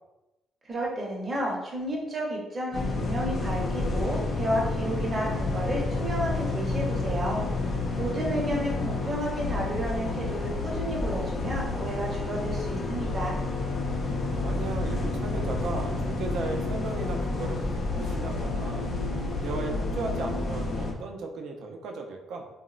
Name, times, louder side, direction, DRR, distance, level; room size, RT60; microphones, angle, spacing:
voice 1, 0.6-7.4 7.9-13.4, right 1 dB, 30° right, -3 dB, 0.6 m, -31 dB
sound 1, 2.7-20.9, left 3 dB, 45° left, 0.4 m, -30 dB
voice 2, 14.4-18.9 19.4-22.5, right 3 dB, 70° right, 3 dB, 0.4 m, -36 dB
2.8 x 2.0 x 2.3 m, 1.0 s
cardioid pair, 120°, 0 cm